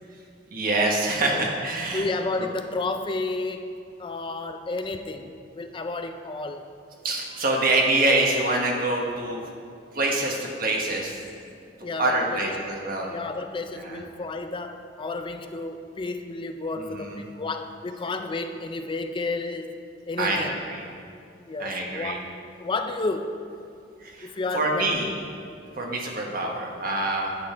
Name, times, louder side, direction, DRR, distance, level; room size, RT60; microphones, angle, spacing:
voice 1, 0.5-2.1 7.0-9.4 9.9-11.2 12.0-13.1 13.8-14.0 16.9-17.2 20.2-20.8 21.6-22.2 24.0-25.1 25.8-27.3, right 2 dB, 55° right, 0 dB, 1.4 m, -25 dB
voice 2, 1.9-3.7 4.0-6.7 11.8-12.5 13.1-20.6 21.5-23.4 24.2-24.9, left 3 dB, 30° left, 7 dB, 0.4 m, -31 dB
9.7 x 8.7 x 4.5 m, 2.4 s
head